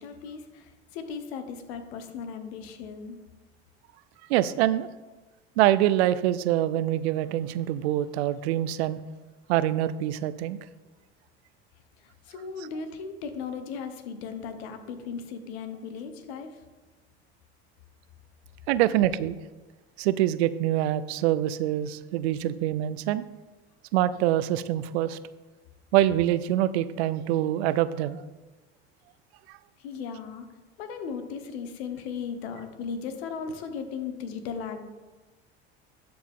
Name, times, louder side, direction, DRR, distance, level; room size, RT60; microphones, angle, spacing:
voice 1, 0.0-3.2 12.0-16.5 29.8-30.5 30.8-34.9, left 6 dB, 80° left, 1.1 m, -37 dB
voice 2, 4.3-4.9 5.6-9.0 9.5-10.6 18.7-19.4 20.0-23.2 23.9-25.2 25.9-28.2 29.5-29.6, right 13 dB, 80° right, 0.5 m, -25 dB
12.5 x 4.3 x 3.6 m
hypercardioid pair, 80°, 31 cm